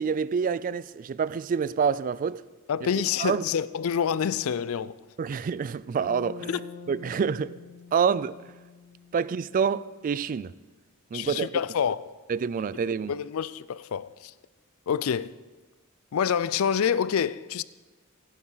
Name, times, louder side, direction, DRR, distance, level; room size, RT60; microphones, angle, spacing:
voice 1, 0.0-2.4 3.2-3.4 5.2-6.6 6.9-7.5 7.9-8.4 9.1-10.5 11.1-11.5 12.3-13.1, right 6 dB, 40° right, 0.3 m, -27 dB
voice 2, 2.7-5.0 6.5-6.6 11.1-12.1 13.1-14.3 14.9-15.3 16.1-17.6, left 7 dB, 70° left, 0.4 m, -27 dB
Bass guitar, 6.0-10.1, left 5 dB, 30° left, 2.3 m, -46 dB
15.5 x 10.0 x 3.9 m
head